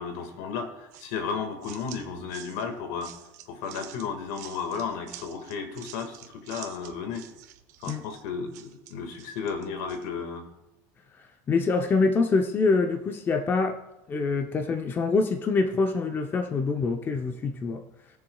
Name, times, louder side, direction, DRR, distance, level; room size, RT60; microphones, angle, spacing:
voice 1, 0.0-3.1 3.5-7.3 7.8-10.5, left 5 dB, 75° left, 6 dB, 1.8 m, -34 dB
sound 1, 0.9-10.1, right 12 dB, 85° right, 0.9 m, -48 dB
voice 2, 11.5-13.8 14.1-17.8, left 4 dB, 25° left, 6 dB, 0.6 m, -25 dB
20.5 x 7.0 x 2.3 m, 0.93 s
supercardioid pair, 135°, 9 cm